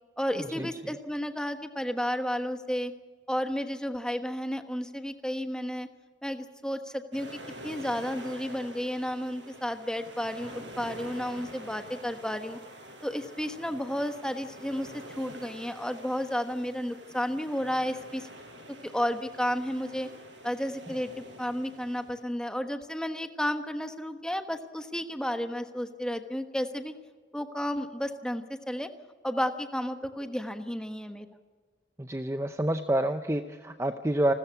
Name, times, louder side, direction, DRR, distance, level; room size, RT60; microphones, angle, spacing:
voice 1, 0.2-2.9 3.3-5.9 6.2-12.6 13.0-18.3 18.8-20.1 20.4-26.9 27.3-28.9 29.2-31.3, equal, 5° left, 7 dB, 1.2 m, -32 dB
sound 1, 7.1-22.2, equal, 70° right, 5.9 m, -47 dB
voice 2, 32.0-34.3, right 1 dB, 15° right, 8 dB, 0.6 m, -28 dB
29.0 x 14.0 x 8.4 m, 1.6 s
head